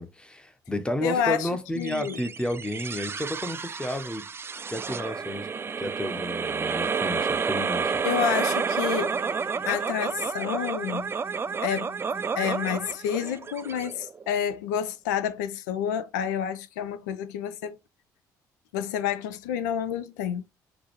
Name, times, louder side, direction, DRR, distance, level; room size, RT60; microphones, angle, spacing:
voice 1, 0.0-4.3 4.7-5.5 5.8-7.9, left 1 dB, 10° left, 0.8 m, -32 dB
voice 2, 1.0-1.5 1.8-2.2 8.0-9.2 9.7-11.1 11.6-11.9 12.4-17.8 18.7-20.4, left 9 dB, 75° left, 0.4 m, -29 dB
sound 1, 1.8-14.5, right 5 dB, 25° right, 0.3 m, -30 dB
6.0 x 2.4 x 2.9 m
figure-of-eight pair, 50°, 10 cm